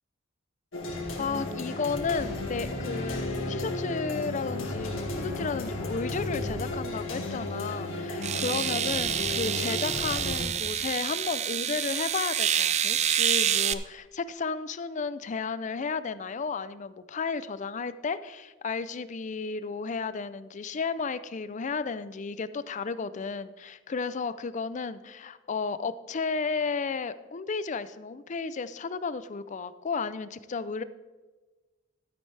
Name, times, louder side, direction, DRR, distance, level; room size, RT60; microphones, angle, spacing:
sound 1, 0.7-10.5, left 2 dB, 80° left, 2.1 m, -33 dB
voice 1, 1.2-30.8, left 5 dB, 40° left, 14 dB, 0.4 m, -33 dB
sound 2, 7.3-7.4 8.2-13.7, right 9 dB, 35° right, 0.4 m, -28 dB
12.5 x 9.8 x 3.3 m, 1.2 s
head